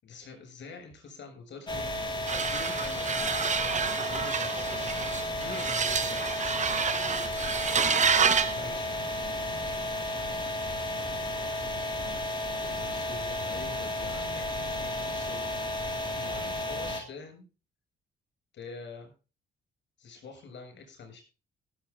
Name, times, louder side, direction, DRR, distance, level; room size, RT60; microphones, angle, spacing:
voice 1, 0.0-1.9 2.3-7.1 8.5-9.1 10.1-10.5 11.5-12.0 12.6-15.7 16.2-17.4 18.5-19.1 20.0-21.2, left 4 dB, 65° left, 5 dB, 7.1 m, -46 dB
sound 1, 1.7-17.0, left 1 dB, 25° left, 2.8 m, -33 dB
sound 2, 2.3-8.6, right 6 dB, 35° right, 1.0 m, -28 dB
17.0 x 8.3 x 3.7 m, 0.32 s
cardioid pair, 90°, 20 cm